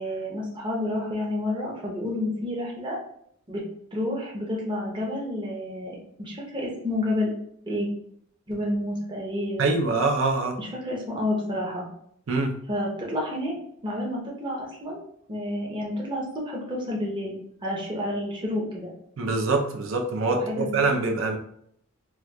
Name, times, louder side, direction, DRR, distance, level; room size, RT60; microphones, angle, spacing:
voice 1, 0.0-3.0 3.5-3.6 3.9-7.3 7.6-7.9 8.5-9.8 10.6-11.9 12.7-13.6 13.8-15.0 15.3-17.4 17.6-18.9 20.3-20.7, left 1 dB, 20° right, -3 dB, 0.7 m, -30 dB
voice 2, 9.6-10.5 12.3-12.5 19.2-21.4, right 3 dB, 65° right, 2 dB, 0.5 m, -24 dB
4.2 x 2.4 x 2.2 m, 0.70 s
head